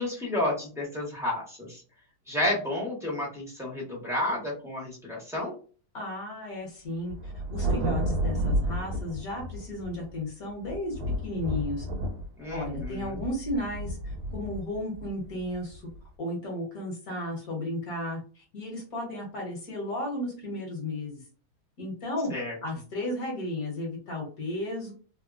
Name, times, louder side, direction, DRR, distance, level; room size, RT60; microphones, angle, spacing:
voice 1, 0.0-1.8 2.3-5.5 12.4-13.2 22.3-22.6, left 1 dB, 5° right, -4 dB, 0.5 m, -31 dB
voice 2, 5.9-11.9 12.5-15.9 16.2-21.2 21.8-22.3 22.6-24.9, left 1 dB, 55° left, -2 dB, 1.4 m, -34 dB
Thunder, 7.1-10.2 10.6-16.0, right 1 dB, 85° right, 1.5 m, -31 dB
3.5 x 2.1 x 2.4 m, 0.38 s
omnidirectional pair, 2.2 m